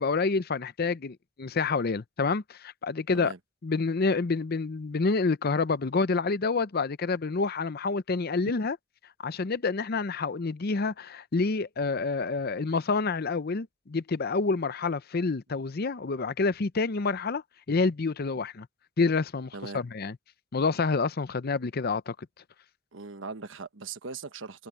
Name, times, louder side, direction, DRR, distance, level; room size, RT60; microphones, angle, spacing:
voice 1, 0.0-3.3 3.6-8.8 9.2-17.4 17.7-18.7 19.0-20.2 20.5-22.1, left 4 dB, 50° left, 0.6 m, -28 dB
voice 2, 22.9-24.7, right 4 dB, 70° right, 1.2 m, -40 dB
head